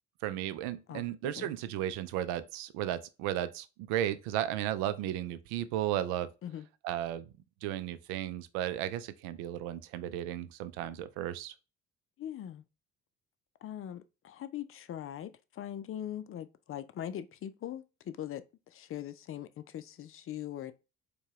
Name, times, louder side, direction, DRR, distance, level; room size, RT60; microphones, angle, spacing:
voice 1, 0.2-6.3 6.8-7.3 7.6-11.5, right 12 dB, 75° right, 0.5 m, -34 dB
voice 2, 0.9-1.5 6.4-6.7 12.2-12.6 13.6-20.7, left 10 dB, 40° left, 0.5 m, -41 dB
4.5 x 2.3 x 3.0 m
hypercardioid pair, 55°, 33 cm